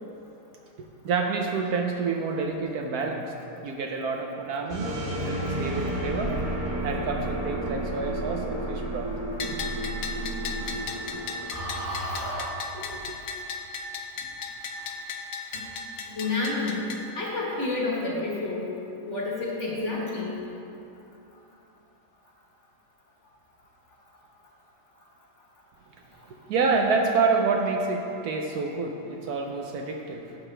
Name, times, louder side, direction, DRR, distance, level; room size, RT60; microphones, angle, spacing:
voice 1, 0.8-3.3 3.6-6.3 6.8-9.1 12.7-13.2 26.5-30.2, right 4 dB, 70° right, 2 dB, 1.1 m, -28 dB
sound 1, 4.7-12.4, right 1 dB, 30° right, 1.6 m, -31 dB
Bell, 9.4-17.0, left 4 dB, 85° left, 1.4 m, -36 dB
voice 2, 11.9-12.5 12.8-13.0 15.5-15.6 16.1-16.8 17.1-18.7 19.1-20.4, left 3 dB, 45° left, -4 dB, 1.7 m, -30 dB
11.5 x 7.3 x 3.3 m, 2.9 s
omnidirectional pair, 1.9 m